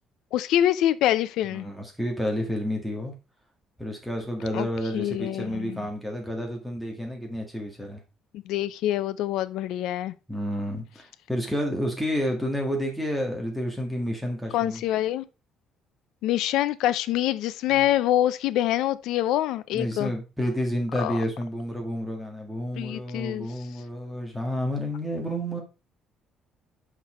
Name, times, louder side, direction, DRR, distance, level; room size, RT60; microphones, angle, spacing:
voice 1, 0.3-1.7 4.5-4.7 4.9-5.9 8.3-10.1 14.5-15.2 16.2-20.1 21.0-21.2 22.8-23.5, left 13 dB, 75° left, 0.5 m, -25 dB
voice 2, 1.5-3.1 3.8-8.0 10.3-14.8 17.7-17.8 19.7-25.6, equal, ahead, 1.9 m, -30 dB
5.9 x 5.9 x 4.2 m
cardioid pair, 165°, 0 cm